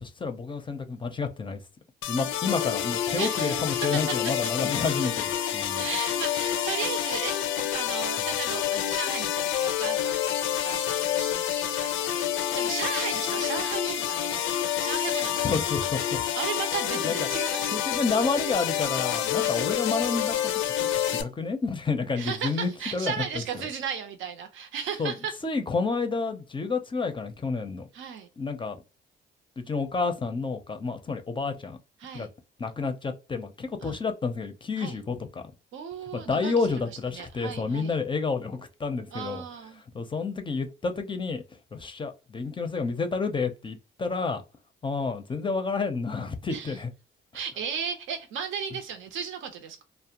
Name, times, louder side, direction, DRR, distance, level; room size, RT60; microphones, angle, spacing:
voice 1, 0.0-1.6 2.1-5.9 15.4-16.2 17.0-17.1 17.7-23.1 25.0-25.1 25.4-27.9 28.4-28.8 29.6-31.8 32.1-32.3 32.6-35.4 36.1-39.4 39.9-41.4 41.7-44.4 44.8-46.9, left 4 dB, 25° left, 0.5 m, -30 dB
sound 1, 2.0-21.2, left 11 dB, 90° left, 0.4 m, -28 dB
voice 2, 3.2-4.5 5.7-15.6 16.2-17.8 19.2-19.5 22.2-25.4 27.9-28.3 32.0-32.3 33.8-34.0 34.8-35.0 35.7-38.0 39.1-39.8 46.5-46.8 47.3-49.8, right 7 dB, 75° right, 0.6 m, -35 dB
2.4 x 2.0 x 2.8 m
cardioid pair, 90°, 20 cm